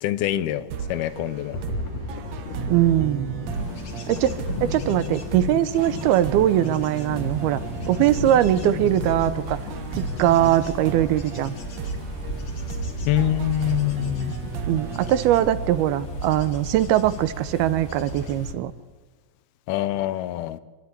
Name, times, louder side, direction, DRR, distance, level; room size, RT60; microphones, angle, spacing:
voice 1, 0.0-1.6 13.1-14.3 19.7-20.6, left 13 dB, 80° left, 15 dB, 2.7 m, -25 dB
sound 1, 0.7-16.2, right 6 dB, 60° right, 2.0 m, -35 dB
sound 2, 1.5-17.3, left 4 dB, 60° left, 3.0 m, -36 dB
voice 2, 2.7-3.5 4.1-7.6 7.9-9.6 10.0-11.5 14.7-18.7, right 12 dB, 80° right, 14 dB, 2.8 m, -21 dB
Bird / Insect / Wind, 3.5-18.5, equal, 40° left, 2.4 m, -36 dB
27.5 x 13.0 x 9.7 m, 1.3 s
omnidirectional pair, 4.4 m